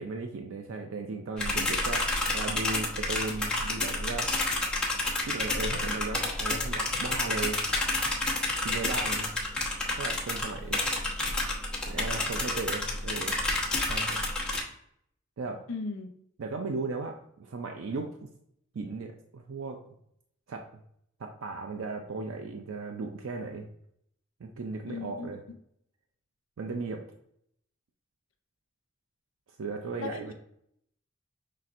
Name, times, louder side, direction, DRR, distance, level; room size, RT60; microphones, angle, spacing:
voice 1, 0.0-4.3 5.2-7.6 8.6-9.3 9.9-11.2 11.9-13.4 13.9-14.2 15.4-15.6 16.4-18.3 18.7-19.8 20.5-20.6 21.2-23.7 24.4-25.4 26.6-27.0 29.6-30.3, right 3 dB, 85° right, 4 dB, 0.5 m, -36 dB
sound 1, 1.4-14.6, left 2 dB, 5° left, 1.0 m, -30 dB
voice 2, 15.7-16.1 24.8-25.3 30.0-30.3, left 4 dB, 80° left, 6 dB, 0.7 m, -37 dB
5.8 x 3.3 x 2.5 m, 0.71 s
head